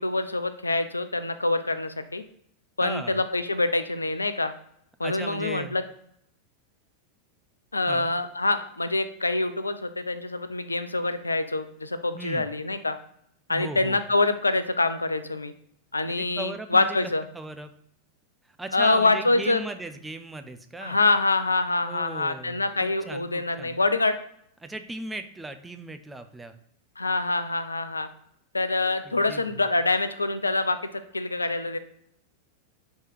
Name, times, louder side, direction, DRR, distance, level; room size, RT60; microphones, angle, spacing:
voice 1, 0.0-2.2 2.8-4.5 5.0-5.8 7.7-13.0 13.5-15.5 15.9-17.2 18.7-19.6 20.8-24.2 27.0-28.1 28.5-31.8, left 2 dB, 80° left, 11 dB, 0.3 m, -25 dB
voice 2, 2.8-3.2 5.0-5.8 7.9-8.1 12.1-12.5 13.5-14.0 16.0-17.0 17.3-17.7 18.5-21.0 21.8-23.8 24.6-26.5 29.0-29.4, right 2 dB, 10° right, 7 dB, 0.4 m, -37 dB
3.3 x 2.9 x 4.5 m, 0.70 s
figure-of-eight pair, 90°, 0 cm